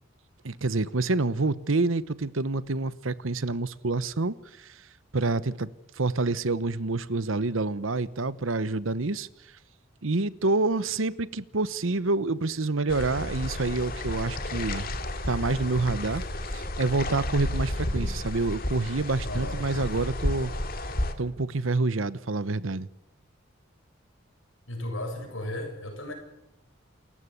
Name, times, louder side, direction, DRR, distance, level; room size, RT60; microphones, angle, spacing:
voice 1, 0.4-4.9 5.1-9.5 10.0-14.9 15.3-16.2 16.5-20.5 21.2-22.9, right 3 dB, 80° right, 1.0 m, -27 dB
sound 1, 12.9-21.1, left 1 dB, 45° left, 2.3 m, -32 dB
sound 2, 13.4-20.3, equal, 5° right, 5.9 m, -53 dB
voice 2, 19.2-19.6 24.7-26.1, left 1 dB, 75° left, 7.6 m, -35 dB
28.5 x 15.0 x 8.3 m
head